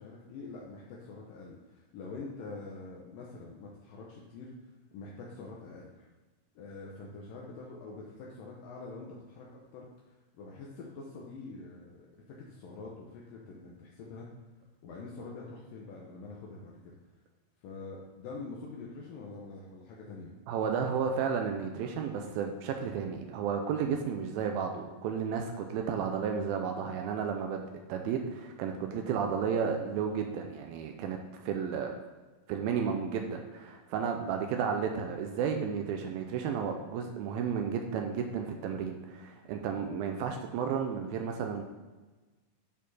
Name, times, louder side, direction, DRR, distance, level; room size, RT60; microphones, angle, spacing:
voice 1, 0.0-4.5 4.9-6.1 6.6-14.3 14.8-16.8 17.6-20.3, left 3 dB, 75° left, -3 dB, 2.4 m, -45 dB
voice 2, 20.5-27.6 27.9-31.9 32.5-41.6, right 6 dB, 85° right, 4 dB, 2.5 m, -32 dB
10.5 x 4.3 x 4.1 m, 1.2 s
omnidirectional pair, 4.2 m